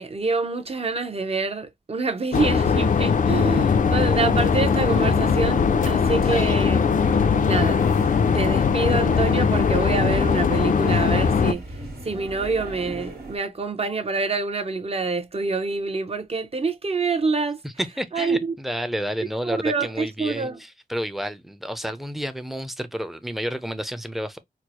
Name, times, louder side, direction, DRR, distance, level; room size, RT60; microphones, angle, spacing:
voice 1, 0.0-6.9 7.4-7.8 8.3-11.6 12.0-17.6 18.1-18.6 19.5-20.6, right 4 dB, 40° right, 0.7 m, -26 dB
sound 1, 2.3-11.5, left 6 dB, 55° left, 0.4 m, -20 dB
sound 2, 4.3-13.4, right 2 dB, 80° right, 1.5 m, -38 dB
voice 2, 17.6-24.4, equal, ahead, 0.5 m, -30 dB
4.4 x 2.0 x 2.9 m
wide cardioid pair, 85°, 16 cm